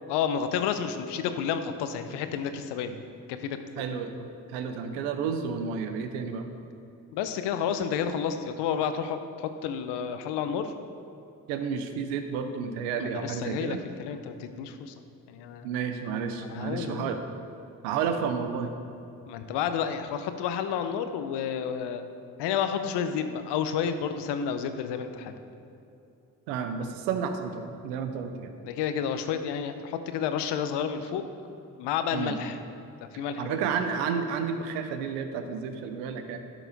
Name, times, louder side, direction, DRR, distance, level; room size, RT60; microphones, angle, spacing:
voice 1, 0.1-3.0 3.3-3.9 7.1-10.7 13.0-14.9 15.3-15.7 16.4-17.1 19.3-22.0 22.4-25.3 28.6-31.2 31.8-32.6 33.1-33.6, left 7 dB, 75° left, 9 dB, 0.7 m, -30 dB
voice 2, 3.8-4.1 4.5-6.5 11.5-13.8 15.6-17.4 17.8-18.7 26.5-28.5 32.1-32.4 33.4-36.4, right 6 dB, 85° right, 7 dB, 0.7 m, -31 dB
11.0 x 6.0 x 4.0 m, 2.7 s
hypercardioid pair, 45°, 42 cm